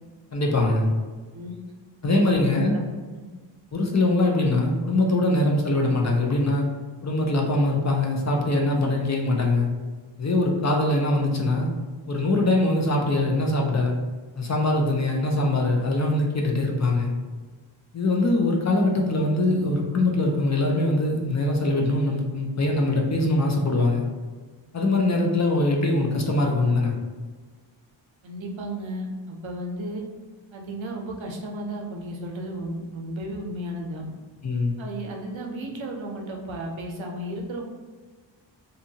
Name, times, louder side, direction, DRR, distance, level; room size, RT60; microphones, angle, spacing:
voice 1, 0.3-0.9 2.0-2.8 3.7-6.7 7.0-9.7 10.2-11.7 12.1-13.9 14.4-17.1 17.9-24.0 24.7-27.0 34.4-34.8, left 2 dB, 40° left, 0 dB, 0.4 m, -22 dB
voice 2, 28.2-30.0 30.5-34.1 34.8-37.6, right 1 dB, 75° right, 1 dB, 0.6 m, -34 dB
2.7 x 2.3 x 2.7 m, 1.4 s
wide cardioid pair, 80°, 46 cm